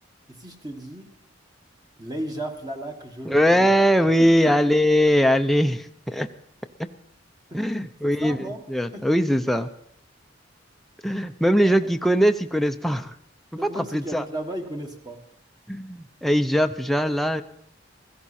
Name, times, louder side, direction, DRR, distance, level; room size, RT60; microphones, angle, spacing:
voice 1, 0.3-1.1 2.0-3.7 4.2-4.6 7.5-8.7 8.9-9.1 11.6-11.9 13.6-15.2, right 1 dB, 20° right, 3 dB, 1.4 m, -35 dB
voice 2, 3.3-6.3 7.5-8.4 8.7-9.7 11.0-13.1 13.7-14.2 15.7-17.4, equal, ahead, 6 dB, 0.5 m, -21 dB
16.0 x 15.0 x 4.2 m, 0.71 s
head